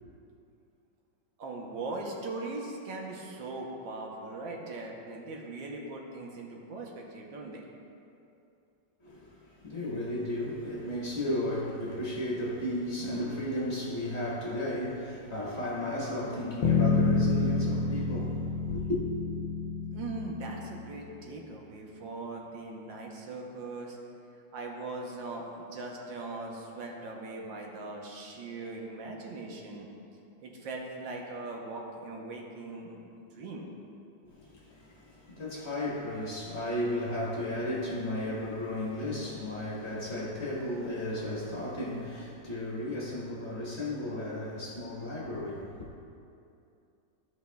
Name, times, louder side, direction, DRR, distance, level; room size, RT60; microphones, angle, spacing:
voice 1, 1.4-7.6 19.9-24.0 24.5-29.9 30.4-33.0 33.3-33.7 43.5-43.8, right 2 dB, 85° right, 0 dB, 1.7 m, -40 dB
voice 2, 9.0-19.0 34.4-45.8, left 1 dB, 40° left, -5 dB, 1.5 m, -34 dB
Bass guitar, 16.6-21.1, left 4 dB, 80° left, 1.3 m, -28 dB
14.5 x 5.3 x 2.3 m, 2.6 s
omnidirectional pair, 2.0 m